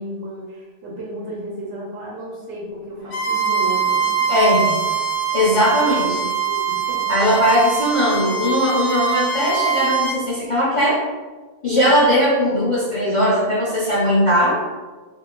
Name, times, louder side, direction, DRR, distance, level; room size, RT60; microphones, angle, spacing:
voice 1, 0.0-4.8 5.7-7.4, right 1 dB, 70° right, -5 dB, 1.0 m, -33 dB
Bowed string instrument, 3.1-10.2, right 7 dB, 85° left, 0.9 m, -22 dB
voice 2, 4.3-4.7 5.3-6.1 7.1-11.0 11.6-14.6, equal, 50° left, -8 dB, 0.4 m, -18 dB
2.6 x 2.4 x 2.9 m, 1.3 s
omnidirectional pair, 1.3 m